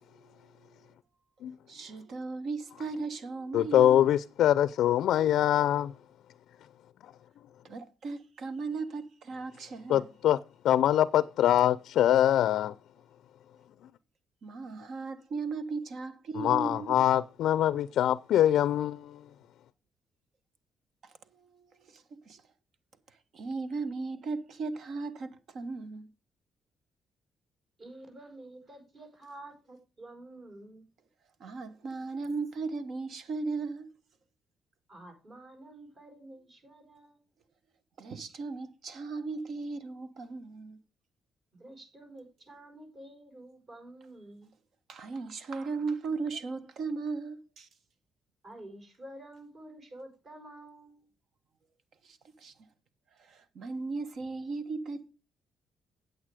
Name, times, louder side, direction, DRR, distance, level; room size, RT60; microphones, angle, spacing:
voice 1, 0.1-0.7 1.7-4.1 7.6-10.1 14.4-17.0 21.0-22.4 23.3-26.1 31.4-33.9 38.0-40.8 44.9-47.7 52.0-52.5 53.2-55.1, right 4 dB, 65° right, 1.3 m, -37 dB
voice 2, 3.5-5.9 9.9-10.4 10.6-12.7 16.4-19.2, left 11 dB, 80° left, 0.4 m, -24 dB
voice 3, 27.8-30.9 34.9-37.2 41.5-44.5 48.4-51.1, right 1 dB, 45° right, 5.2 m, -49 dB
8.9 x 8.1 x 4.9 m
cardioid pair, 90°, 0 cm